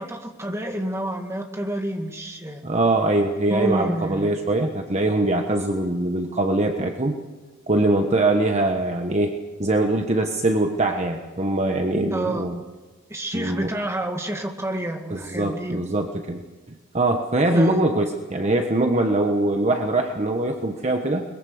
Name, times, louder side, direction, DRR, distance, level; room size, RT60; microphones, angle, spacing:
voice 1, 0.0-2.6 3.5-4.3 12.1-12.6 13.1-15.9 17.5-17.8, right 1 dB, 15° right, 3 dB, 2.2 m, -29 dB
voice 2, 2.6-7.2 7.7-12.6 13.3-13.7 15.1-16.4 16.9-21.2, right 2 dB, 30° right, 4 dB, 1.2 m, -22 dB
22.5 x 21.5 x 6.5 m, 1.3 s
head